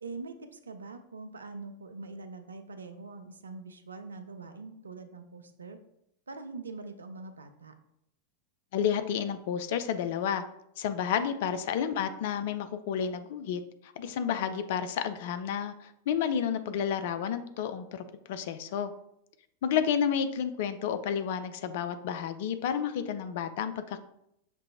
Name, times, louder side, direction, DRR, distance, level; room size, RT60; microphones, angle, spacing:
voice 1, 0.0-5.8 6.3-7.7, right 3 dB, 75° right, 8 dB, 0.4 m, -43 dB
voice 2, 8.7-10.4 10.8-13.6 14.0-18.9 19.6-24.0, left 8 dB, 50° left, 10 dB, 0.3 m, -31 dB
5.9 x 2.5 x 2.7 m, 0.77 s
figure-of-eight pair, 90°, 0 cm